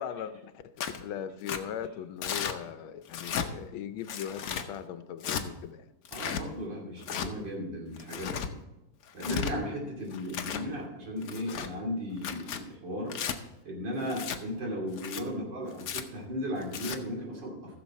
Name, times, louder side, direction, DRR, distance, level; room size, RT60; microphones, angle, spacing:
voice 1, 0.0-5.9 10.6-10.8 15.3-15.5, left 9 dB, 85° left, 11 dB, 1.5 m, -39 dB
Tearing, 0.8-1.0 1.5-1.6 2.2-2.6 3.1-3.5 4.1-4.7 5.2-5.4 6.0-6.4 7.0-7.3 8.0-8.5 9.1-9.5 10.1-10.7 11.2-11.7 12.2-12.6 13.1-13.4 14.1-14.4 14.9-15.2 15.8-16.0 16.6-17.0, left 8 dB, 60° left, 1.0 m, -34 dB
voice 2, 6.1-8.5 9.1-13.1 13.6-17.8, equal, 65° right, -2 dB, 3.3 m, -36 dB
15.0 x 6.8 x 4.2 m, 0.99 s
omnidirectional pair, 2.2 m